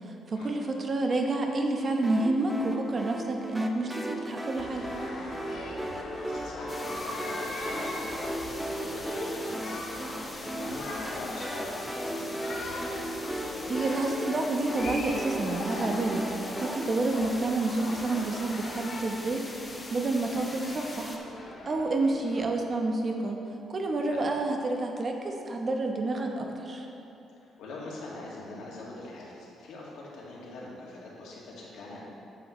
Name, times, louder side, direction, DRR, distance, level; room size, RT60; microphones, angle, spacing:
voice 1, 0.3-4.9 13.6-16.3 16.6-19.4 19.9-21.2 21.6-23.4 23.7-26.9, right 2 dB, 40° right, 3 dB, 0.9 m, -29 dB
sound 1, 2.0-16.8, right 1 dB, 5° right, 0.6 m, -37 dB
sound 2, 4.6-22.5, left 2 dB, 60° left, 1.5 m, -40 dB
voice 2, 5.5-10.2 10.6-12.5 24.0-24.2 27.4-32.0, left 2 dB, 80° left, -5 dB, 2.0 m, -43 dB
sound 3, 6.7-21.2, left 2 dB, 20° left, 1.0 m, -43 dB
8.9 x 8.1 x 3.1 m, 2.7 s
cardioid pair, 90°, 0 cm